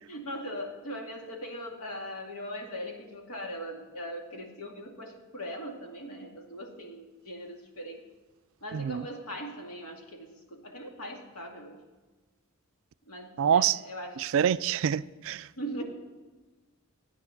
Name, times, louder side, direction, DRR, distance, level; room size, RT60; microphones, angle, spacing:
voice 1, 0.0-8.0 8.6-11.8 13.1-14.2 15.6-15.8, equal, 90° left, 2.2 m, -40 dB
voice 2, 8.7-9.1 13.4-13.8 14.2-15.5, right 8 dB, 65° right, 0.3 m, -26 dB
14.5 x 9.4 x 5.8 m
head